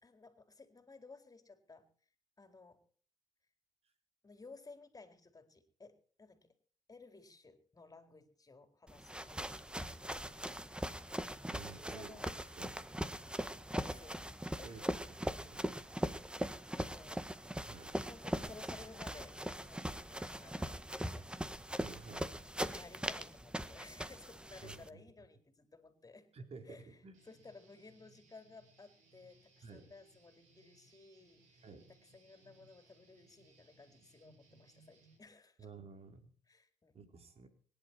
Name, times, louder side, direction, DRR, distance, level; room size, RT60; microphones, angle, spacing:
voice 1, 0.0-1.9 2.4-2.9 4.2-6.5 6.9-10.9 11.9-12.3 13.4-14.2 14.6-15.2 15.9-17.2 18.0-21.5 22.6-26.3 26.6-35.7 36.5-37.0, left 3 dB, 30° left, 7 dB, 4.3 m, -57 dB
sound 1, 8.9-24.9, right 1 dB, 10° right, 1.7 m, -41 dB
voice 2, 11.5-12.2 12.6-12.8 14.6-14.8 15.4-15.6 17.6-18.0 21.8-22.5 24.6-25.0 26.3-27.2 29.6-29.9 31.6-31.9 35.6-36.3 36.9-37.5, right 4 dB, 55° right, 7 dB, 3.8 m, -52 dB
Guitar, 27.1-35.2, right 2 dB, 85° right, 7.3 m, -67 dB
24.5 x 11.5 x 4.5 m, 0.43 s
supercardioid pair, 60°, 12 cm